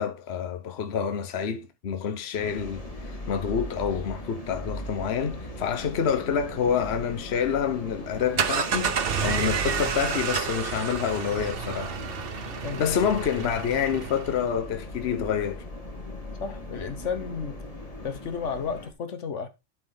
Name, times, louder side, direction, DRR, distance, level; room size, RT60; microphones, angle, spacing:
voice 1, 0.0-12.0 12.6-15.6, left 7 dB, 60° left, 1.1 m, -28 dB
sound 1, 2.3-18.9, left 1 dB, 30° left, 1.6 m, -39 dB
sound 2, 8.1-14.5, right 6 dB, 55° right, 1.0 m, -30 dB
voice 2, 12.6-13.0 16.4-17.6 18.0-19.5, left 6 dB, 80° left, 1.4 m, -32 dB
12.0 x 4.8 x 3.8 m
omnidirectional pair, 1.2 m